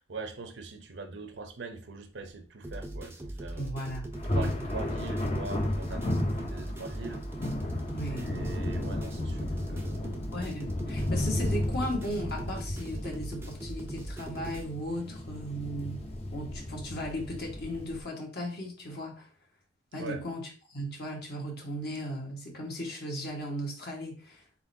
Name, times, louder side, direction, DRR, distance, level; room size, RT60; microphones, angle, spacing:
voice 1, 0.0-4.0 4.3-7.3 8.0-10.2 20.0-20.2, right 3 dB, 65° right, 0.6 m, -42 dB
sound 1, 2.6-14.6, right 1 dB, 10° right, 0.4 m, -40 dB
voice 2, 3.6-4.1 7.9-8.3 10.3-16.1 16.3-19.3 19.9-24.4, equal, 55° left, 1.3 m, -36 dB
Thunder, 4.1-18.0, left 1 dB, 30° left, 0.6 m, -34 dB
4.1 x 3.8 x 2.7 m
head